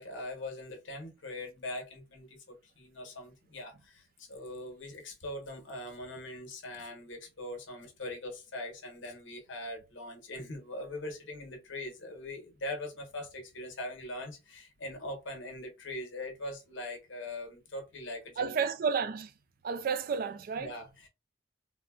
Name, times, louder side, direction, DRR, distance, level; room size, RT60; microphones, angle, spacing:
voice 1, 0.0-18.6 20.6-21.1, left 1 dB, 75° left, 1.0 m, -41 dB
voice 2, 18.4-19.3 19.6-20.7, right 6 dB, 50° right, 0.3 m, -31 dB
3.7 x 2.2 x 2.3 m
head